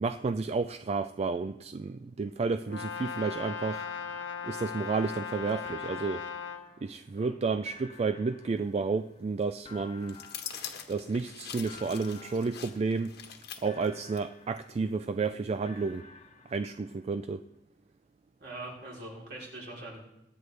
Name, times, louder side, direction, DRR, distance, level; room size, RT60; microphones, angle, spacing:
voice 1, 0.0-3.8 4.4-6.2 6.8-10.2 10.9-13.1 13.6-16.0 16.5-17.4, right 4 dB, 35° right, 0.3 m, -31 dB
Brass instrument, 2.7-6.7, left 7 dB, 80° left, 1.2 m, -38 dB
sound 1, 3.7-5.4 5.6-7.3 7.7-9.3 9.6-11.4 11.6-13.4 13.6-15.3 15.7-17.3, left 4 dB, 30° left, 1.1 m, -53 dB
sound 2, 10.0-14.2 14.6-14.7, left 8 dB, 60° left, 1.3 m, -44 dB
voice 2, 18.4-20.0, right 2 dB, 60° right, 3.8 m, -42 dB
22.5 x 9.3 x 3.3 m
head